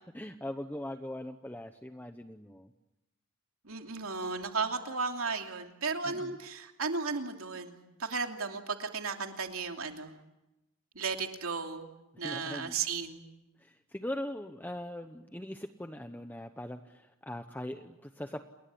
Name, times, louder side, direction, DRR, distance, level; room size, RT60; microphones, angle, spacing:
voice 1, 0.1-2.7 6.0-6.3 12.2-12.7 13.6-18.5, left 1 dB, 10° left, 7 dB, 0.8 m, -41 dB
voice 2, 3.6-10.1 10.9-11.9 12.2-13.2, right 4 dB, 75° right, 4 dB, 2.9 m, -35 dB
29.0 x 21.0 x 8.5 m, 0.96 s
head